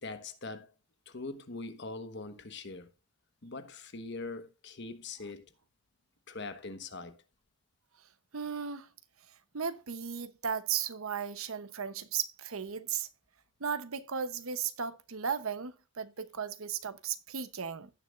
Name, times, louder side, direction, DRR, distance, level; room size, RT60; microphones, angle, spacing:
voice 1, 0.0-0.7 1.1-2.9 3.4-5.5 6.3-7.2, left 3 dB, 55° left, 1.2 m, -42 dB
voice 2, 8.3-8.9 9.3-13.1 13.6-17.9, right 7 dB, 75° right, 0.9 m, -36 dB
16.5 x 6.9 x 2.5 m
head